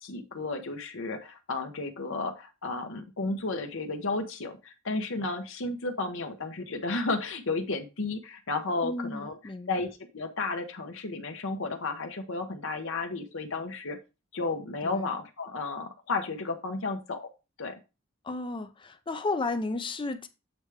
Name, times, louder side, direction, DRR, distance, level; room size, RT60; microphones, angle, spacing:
voice 1, 0.0-9.4 9.7-14.0 14.3-17.3 17.6-17.8, left 3 dB, 65° left, 0.9 m, -33 dB
voice 2, 8.8-9.8 14.8-15.1 18.2-20.3, left 3 dB, 25° left, 0.5 m, -33 dB
8.1 x 3.4 x 4.8 m
head